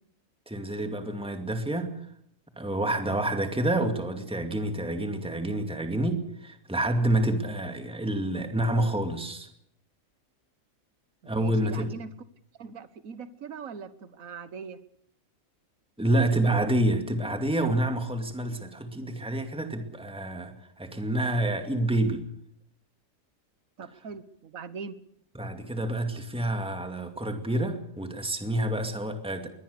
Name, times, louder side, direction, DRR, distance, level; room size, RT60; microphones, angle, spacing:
voice 1, 0.5-2.0 2.6-9.5 11.2-11.9 16.0-22.2 25.3-29.5, right 1 dB, 5° right, 6 dB, 2.3 m, -28 dB
voice 2, 11.2-12.1 12.6-14.8 23.8-25.0, right 5 dB, 80° right, 13 dB, 1.7 m, -41 dB
23.0 x 19.0 x 6.9 m, 0.73 s
omnidirectional pair, 1.4 m